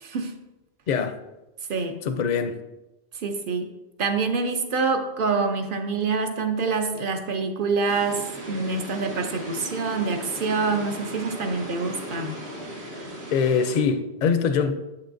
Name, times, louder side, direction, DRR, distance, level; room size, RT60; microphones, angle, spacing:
voice 1, 0.0-0.4 1.7-2.0 3.2-3.6 4.0-12.4, right 4 dB, 60° right, 6 dB, 0.8 m, -26 dB
voice 2, 2.0-2.5 13.3-14.7, left 6 dB, 55° left, 9 dB, 0.5 m, -23 dB
sound 1, 7.9-13.8, right 1 dB, 85° right, 1.6 m, -37 dB
7.5 x 6.7 x 2.6 m, 1.0 s
omnidirectional pair, 1.1 m